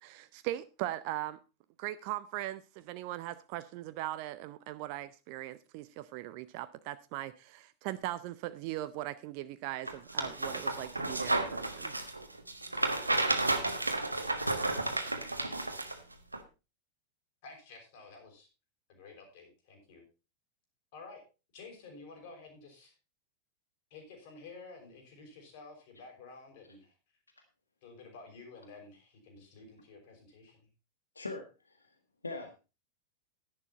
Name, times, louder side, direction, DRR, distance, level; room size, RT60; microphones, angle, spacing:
voice 1, 0.0-1.4 1.8-11.9, right 15 dB, 45° right, 13 dB, 0.6 m, -39 dB
sound 1, 9.9-16.0 16.3-16.4, right 2 dB, 85° right, 1.3 m, -32 dB
voice 2, 17.4-18.5 18.9-20.0 20.9-21.2 21.5-22.9 23.9-26.9 27.8-30.7, left 3 dB, 50° left, 2 dB, 5.8 m, -51 dB
voice 3, 31.1-31.9 32.2-32.6, left 3 dB, 80° left, 6 dB, 1.5 m, -41 dB
11.0 x 11.0 x 4.2 m, 0.30 s
figure-of-eight pair, 90°, 0 cm